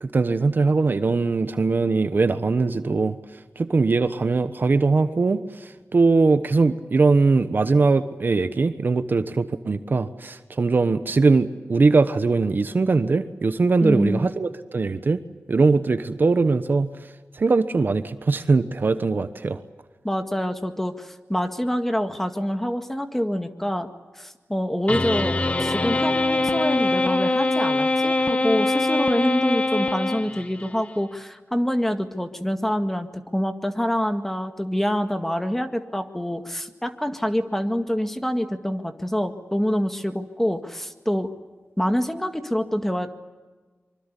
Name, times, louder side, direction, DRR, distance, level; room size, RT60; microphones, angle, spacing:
voice 1, 0.0-3.2 3.6-15.2 15.5-16.9 17.3-19.6, right 3 dB, 45° right, 11 dB, 1.1 m, -21 dB
voice 2, 13.8-14.3 20.0-23.9 24.2-41.3 41.8-43.1, equal, 5° left, 7 dB, 1.9 m, -26 dB
sound 1, 24.9-30.7, left 2 dB, 30° left, 1.3 m, -23 dB
25.0 x 24.5 x 8.4 m, 1.3 s
wide cardioid pair, 125°, 5 cm